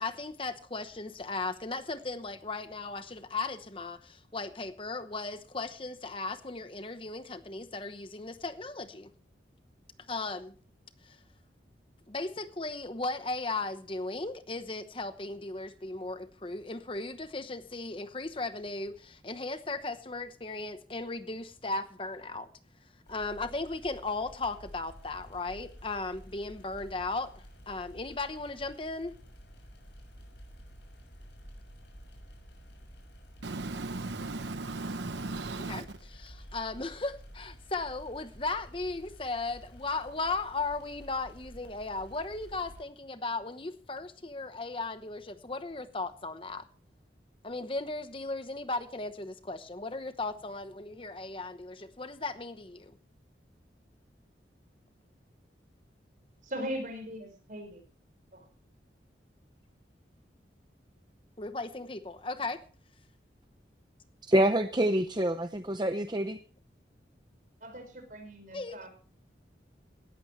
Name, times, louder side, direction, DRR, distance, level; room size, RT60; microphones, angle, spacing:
voice 1, 0.0-9.1 10.1-10.5 11.0-11.2 12.1-22.5 23.1-29.2 35.6-35.8 36.1-46.6 47.4-52.9 61.4-62.6 68.5-68.8, left 3 dB, 30° left, 1.0 m, -36 dB
sound 1, 23.1-42.8, equal, 85° left, 6.6 m, -51 dB
voice 2, 33.4-35.8, right 3 dB, 85° right, 0.9 m, -36 dB
voice 3, 56.5-57.8 58.3-58.5 67.6-68.9, equal, 45° right, 5.4 m, -39 dB
voice 4, 64.3-66.4, right 1 dB, 25° right, 0.7 m, -26 dB
18.0 x 14.0 x 3.2 m
head